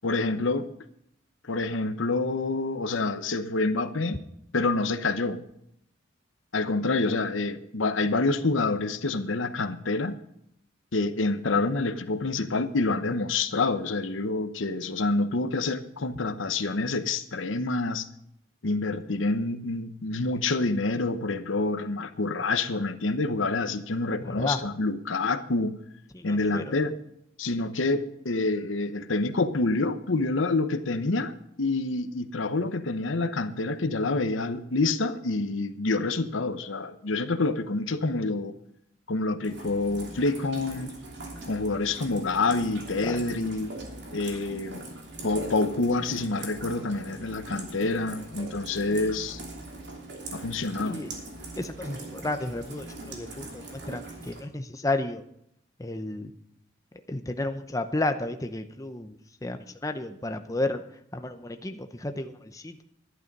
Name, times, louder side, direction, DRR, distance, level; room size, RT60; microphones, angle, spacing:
voice 1, 0.0-0.7 1.4-4.2 4.5-5.4 6.5-10.2 10.9-18.1 18.6-25.8 26.2-27.0 27.4-31.3 31.6-38.5 39.1-40.9 41.5-43.7 44.1-44.9 45.2-49.4 50.3-51.0, left 3 dB, 85° left, 10 dB, 0.9 m, -27 dB
voice 2, 26.1-26.6 43.0-43.2 50.8-51.1 51.6-55.2 55.8-56.3 57.1-59.2 59.4-60.8 61.1-62.8, left 2 dB, 15° left, 7 dB, 0.6 m, -32 dB
Rain, 39.4-54.4, right 2 dB, 60° right, 2.9 m, -41 dB
11.5 x 11.0 x 5.4 m, 0.74 s
head